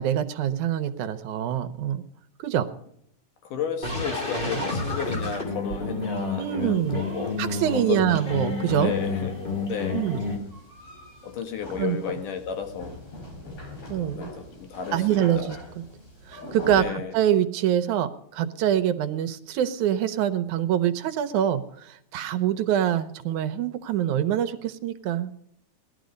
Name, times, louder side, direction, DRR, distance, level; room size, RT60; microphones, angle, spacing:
voice 1, 0.0-2.0 2.4-2.7 6.4-7.0 7.4-8.9 9.9-10.2 11.8-12.0 13.9-14.3 14.9-15.6 16.3-25.3, right 10 dB, 75° right, 2.2 m, -25 dB
voice 2, 3.5-7.4 7.7-8.1 8.8-9.3 9.7-10.0 11.2-13.0 13.5-13.6 13.9-15.5 16.8-17.1, left 7 dB, 80° left, 3.3 m, -33 dB
sound 1, 3.8-10.4, left 3 dB, 15° left, 2.6 m, -30 dB
sound 2, 6.6-16.9, left 1 dB, 55° left, 6.3 m, -43 dB
18.5 x 12.0 x 5.2 m
omnidirectional pair, 3.6 m